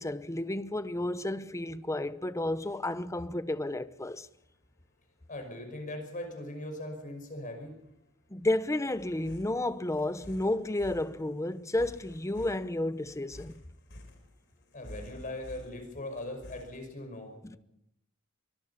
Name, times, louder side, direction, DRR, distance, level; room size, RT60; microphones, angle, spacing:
voice 1, 0.0-4.3 8.3-13.6 17.4-17.6, left 1 dB, 15° left, 0.8 m, -32 dB
sound 1, 0.7-16.9, left 1 dB, 60° left, 4.4 m, -53 dB
voice 2, 5.3-7.7 14.7-17.6, left 1 dB, 40° left, 5.6 m, -40 dB
24.0 x 22.0 x 5.7 m
head